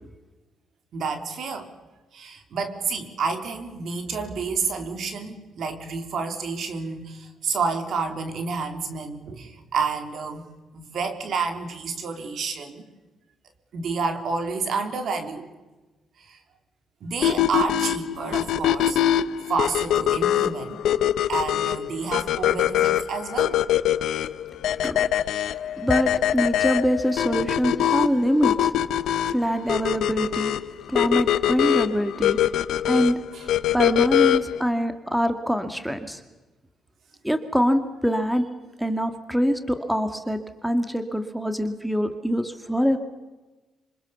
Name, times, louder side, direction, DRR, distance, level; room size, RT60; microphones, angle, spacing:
voice 1, 0.9-1.7 2.1-10.5 10.7-12.8 13.7-15.5 16.2-16.4 17.0-19.0 19.5-20.8 21.3-23.6 33.3-33.4, right 4 dB, 65° right, 6 dB, 3.6 m, -29 dB
sound 1, 17.2-34.6, left 11 dB, 75° left, 0.8 m, -23 dB
voice 2, 25.8-28.7 29.3-30.5 30.9-32.4 32.9-33.2 33.7-36.2 37.2-38.5 38.8-43.0, equal, ahead, 8 dB, 2.1 m, -24 dB
26.5 x 25.0 x 7.1 m, 1.2 s
cardioid pair, 90°, 0 cm